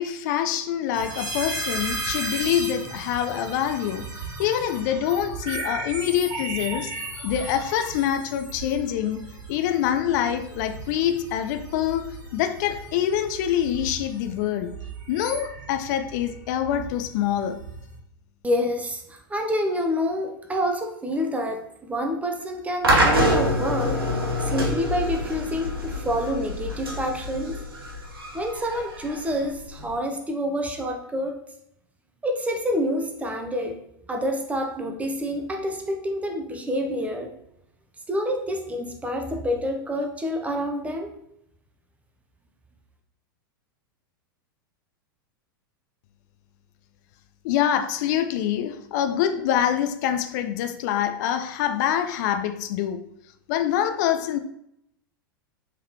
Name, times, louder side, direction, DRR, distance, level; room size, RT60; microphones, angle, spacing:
voice 1, 0.0-4.1 4.4-6.9 7.2-9.2 9.5-12.1 12.3-14.7 15.1-17.6 47.4-53.0 53.5-54.4, left 10 dB, 55° left, 0.3 m, -25 dB
sound 1, 0.9-18.0, right 2 dB, 30° right, 1.6 m, -36 dB
voice 2, 18.4-24.0 24.5-27.6 28.3-31.4 32.2-33.8 34.1-37.3 38.1-41.1, equal, 10° right, 0.5 m, -27 dB
sound 2, 22.8-29.9, equal, 85° right, 1.0 m, -25 dB
3.6 x 3.6 x 2.8 m
hypercardioid pair, 100°, 12 cm